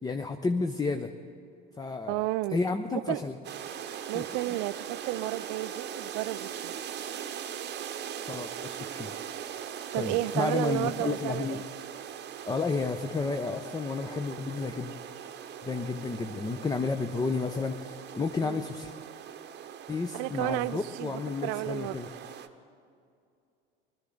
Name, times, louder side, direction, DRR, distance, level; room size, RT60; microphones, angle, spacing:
voice 1, 0.0-1.1 1.8-2.2 2.5-3.4 4.1-4.2 8.2-9.1 10.0-11.6 12.5-14.9 15.6-18.9 19.9-22.1, left 4 dB, 15° left, 7 dB, 0.6 m, -31 dB
voice 2, 2.1-2.6 2.9-3.2 4.1-6.7 9.9-11.6 18.4-18.6 20.1-22.0, right 18 dB, 55° right, 17 dB, 0.5 m, -32 dB
sound 1, 3.4-22.5, right 8 dB, 35° right, 0.9 m, -40 dB
20.5 x 13.0 x 3.9 m, 2.5 s
hypercardioid pair, 70°, 29 cm